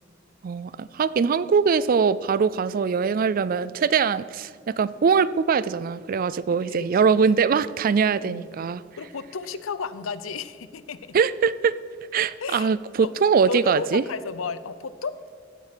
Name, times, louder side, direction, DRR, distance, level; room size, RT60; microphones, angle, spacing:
voice 1, 0.4-4.5 4.8-8.8 11.1-11.7 12.1-14.0, right 6 dB, 45° right, 18 dB, 0.3 m, -22 dB
voice 2, 6.7-7.0 8.2-8.5 9.0-11.2 12.4-12.7 13.0-13.1 13.5-15.3, left 5 dB, 80° left, 15 dB, 0.6 m, -33 dB
15.0 x 7.3 x 5.9 m, 2.1 s
head